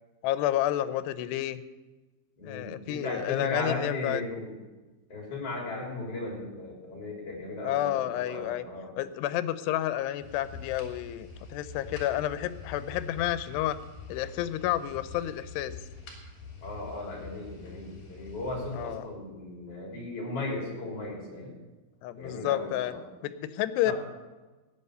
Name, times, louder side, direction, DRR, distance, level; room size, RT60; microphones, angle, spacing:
voice 1, 0.2-1.6 2.4-4.2 7.6-8.6 9.0-13.8 14.1-15.8 18.7-19.0 22.0-22.9 23.2-23.9, left 13 dB, 85° left, 13 dB, 2.7 m, -30 dB
voice 2, 2.4-4.5 5.1-8.9 16.6-21.5 22.2-23.0 23.8-23.9, left 2 dB, 35° left, -1 dB, 4.2 m, -36 dB
sound 1, 10.2-19.0, left 4 dB, 55° left, 4.0 m, -45 dB
15.0 x 9.5 x 6.6 m, 1.2 s
omnidirectional pair, 4.8 m